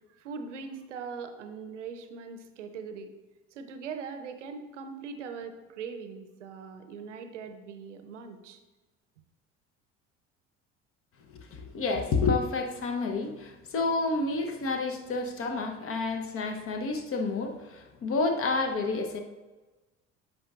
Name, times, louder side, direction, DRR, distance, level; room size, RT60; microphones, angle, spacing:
voice 1, 0.1-3.1 3.5-8.6, right 5 dB, 75° right, 8 dB, 0.7 m, -41 dB
voice 2, 11.5-19.2, left 3 dB, 35° left, 5 dB, 0.9 m, -29 dB
10.0 x 5.0 x 2.4 m, 1.2 s
figure-of-eight pair, 60°, 37 cm